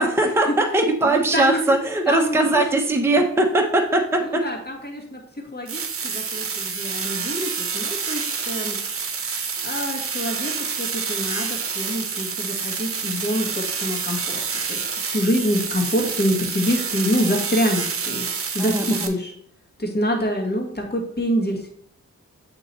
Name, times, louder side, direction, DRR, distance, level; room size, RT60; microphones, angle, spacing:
voice 1, 0.0-4.4 18.6-19.1, right 2 dB, 10° right, 2 dB, 0.7 m, -20 dB
voice 2, 1.0-1.8 2.1-2.6 4.2-8.8 9.6-18.3 18.5-19.3 19.8-21.7, equal, 35° left, 1 dB, 1.6 m, -26 dB
sound 1, 5.7-19.1, right 5 dB, 50° right, 0.8 m, -28 dB
8.3 x 3.0 x 4.1 m, 0.65 s
cardioid pair, 70°, 30 cm